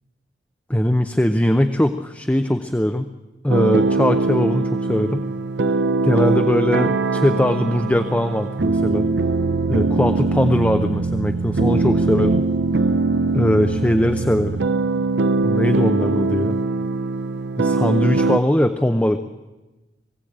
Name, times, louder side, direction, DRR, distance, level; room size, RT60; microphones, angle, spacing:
voice 1, 0.7-3.1 3.4-5.3 6.0-9.1 9.7-12.5 13.3-14.6 15.4-16.6 17.6-19.2, left 1 dB, 10° left, 8 dB, 0.7 m, -20 dB
sound 1, 3.5-18.4, right 3 dB, 75° right, 0.6 m, -21 dB
21.5 x 16.5 x 8.8 m, 1.1 s
head